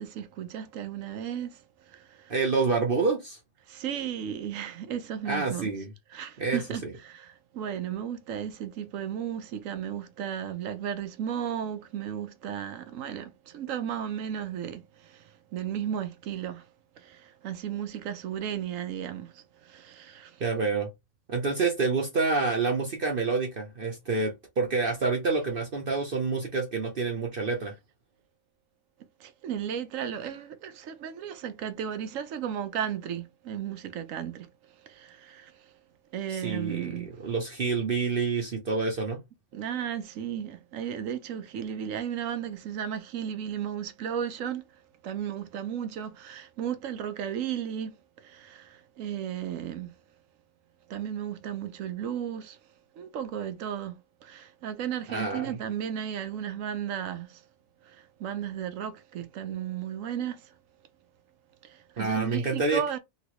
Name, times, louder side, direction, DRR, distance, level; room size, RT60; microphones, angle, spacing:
voice 1, 0.0-2.3 3.7-5.8 6.1-16.7 17.0-20.4 29.2-34.5 34.8-35.7 36.1-37.1 39.5-44.7 45.0-49.9 50.9-52.6 52.9-57.4 57.8-60.5 61.6-63.0, right 9 dB, 75° right, 1.0 m, -35 dB
voice 2, 2.3-3.4 5.3-5.9 6.4-6.9 20.4-20.9 21.3-27.7 36.3-39.2 55.1-55.6 62.0-62.8, right 4 dB, 50° right, 0.8 m, -28 dB
3.0 x 2.9 x 2.9 m
omnidirectional pair, 1.4 m